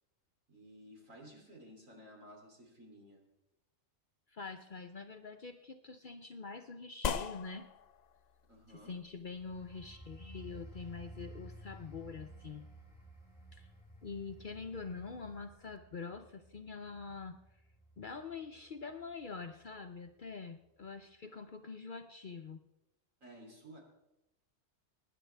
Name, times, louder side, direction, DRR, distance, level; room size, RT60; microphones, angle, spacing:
voice 1, 0.5-3.2 8.5-9.0 23.2-23.8, equal, 75° right, -1 dB, 3.5 m, -54 dB
voice 2, 4.3-7.7 8.7-12.7 13.5-13.7 14.0-17.4 18.0-22.6, left 4 dB, 50° left, 6 dB, 0.6 m, -45 dB
sound 1, 7.0-15.8, left 7 dB, 90° left, 0.3 m, -45 dB
sound 2, 9.3-19.6 20.1-20.3, right 1 dB, 5° left, 4.9 m, -54 dB
24.5 x 10.0 x 3.3 m, 0.94 s
omnidirectional pair, 1.4 m